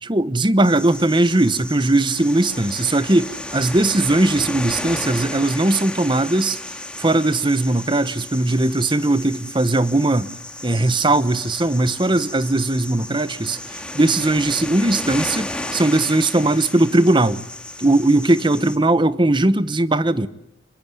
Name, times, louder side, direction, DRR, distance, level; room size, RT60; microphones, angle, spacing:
voice 1, 0.0-6.6 7.0-10.3 10.6-17.4 17.8-20.3, right 2 dB, 25° right, 1.0 m, -19 dB
sound 1, 0.6-18.8, left 1 dB, 5° left, 2.1 m, -33 dB
26.5 x 22.0 x 9.8 m
head